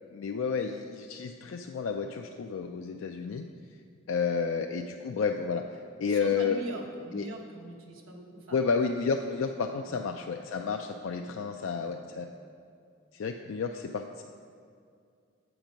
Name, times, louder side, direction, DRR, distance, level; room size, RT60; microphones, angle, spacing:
voice 1, 0.1-3.4 4.1-6.6 7.1-7.3 8.5-12.3 13.1-14.2, left 5 dB, 70° left, 4 dB, 0.4 m, -31 dB
voice 2, 6.1-8.7 9.8-10.2 10.6-10.8 11.5-12.3, right 2 dB, 85° right, 1 dB, 1.1 m, -43 dB
8.0 x 5.9 x 5.1 m, 2.3 s
head